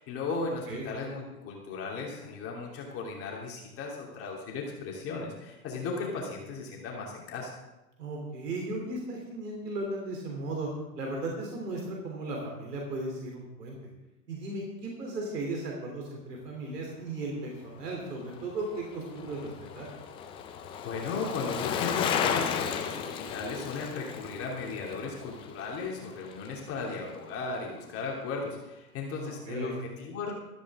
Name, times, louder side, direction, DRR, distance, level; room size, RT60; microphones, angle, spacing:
voice 1, 0.0-7.6 20.8-30.3, left 4 dB, 30° left, -2 dB, 2.8 m, -36 dB
voice 2, 8.0-10.7 10.9-13.8 14.3-19.9 29.5-29.7, right 2 dB, 75° right, 0 dB, 3.4 m, -36 dB
Bicycle, 18.2-26.6 26.9-27.0, left 8 dB, 10° left, 0.4 m, -34 dB
15.0 x 13.5 x 3.7 m, 1.0 s
hypercardioid pair, 120°, 48 cm